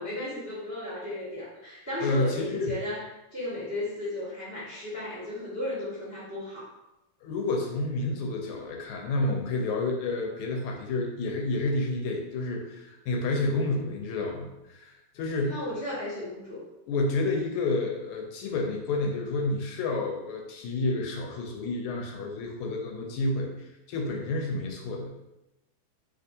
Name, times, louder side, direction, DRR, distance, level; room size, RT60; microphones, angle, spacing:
voice 1, 0.0-6.7 15.5-16.6, left 1 dB, 15° right, -9 dB, 0.6 m, -35 dB
voice 2, 2.0-2.7 7.2-15.6 16.9-25.2, left 2 dB, 80° left, 1 dB, 1.4 m, -30 dB
3.4 x 2.8 x 2.6 m, 0.92 s
omnidirectional pair, 2.4 m